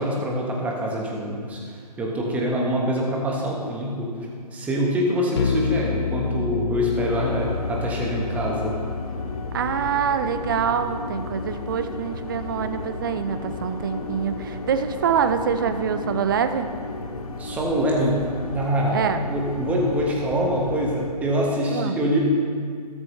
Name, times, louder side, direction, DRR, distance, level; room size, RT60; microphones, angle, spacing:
voice 1, 0.0-1.6 2.0-4.1 4.5-8.7 17.4-18.1 18.5-19.0 19.3-22.2, equal, 5° right, -2 dB, 1.2 m, -24 dB
sound 1, 5.4-15.4, left 6 dB, 35° left, 0.5 m, -32 dB
sound 2, 6.9-21.1, left 2 dB, 55° left, 1.3 m, -34 dB
voice 2, 9.5-16.7 18.9-19.2 21.7-22.0, right 7 dB, 30° right, 9 dB, 0.6 m, -25 dB
14.0 x 13.5 x 3.2 m, 2.1 s
figure-of-eight pair, 140°, 21 cm